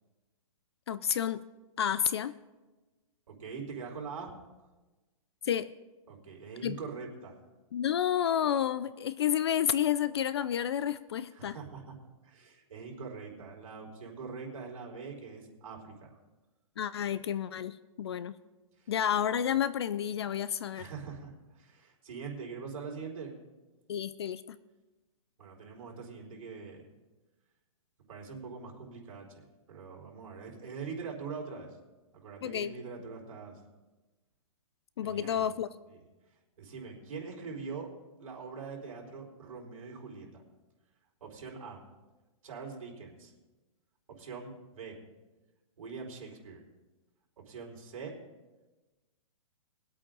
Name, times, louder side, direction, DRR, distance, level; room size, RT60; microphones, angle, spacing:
voice 1, 0.9-1.4 1.8-2.4 5.4-5.7 6.6-6.8 7.7-11.5 16.8-18.4 18.9-20.9 23.9-24.6 32.4-32.7 35.0-35.7, left 9 dB, 50° left, 16 dB, 0.4 m, -30 dB
voice 2, 3.3-4.3 6.1-7.4 11.3-11.9 12.2-16.2 18.8-18.9 20.7-23.3 25.4-26.8 28.1-31.7 32.1-33.6 35.0-35.5 35.9-36.0 36.6-37.9 38.2-40.4 41.2-41.8 42.4-43.3 44.1-45.0 45.8-46.6 47.4-48.2, right 5 dB, 65° right, -1 dB, 4.5 m, -43 dB
22.0 x 8.5 x 3.9 m, 1.2 s
hypercardioid pair, 170°, 18 cm